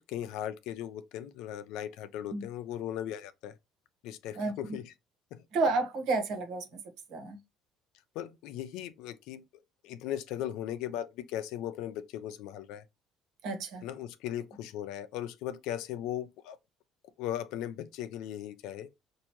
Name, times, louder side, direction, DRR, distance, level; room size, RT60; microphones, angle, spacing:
voice 1, 0.0-3.5 4.0-4.9 5.3-5.4 8.1-12.8 13.8-16.6 17.2-18.9, left 11 dB, 80° left, 0.6 m, -38 dB
voice 2, 4.3-4.8 5.5-6.8 7.1-7.4 13.4-13.8, right 3 dB, 70° right, 1.3 m, -31 dB
5.7 x 2.7 x 3.0 m
cardioid pair, 115°, 0 cm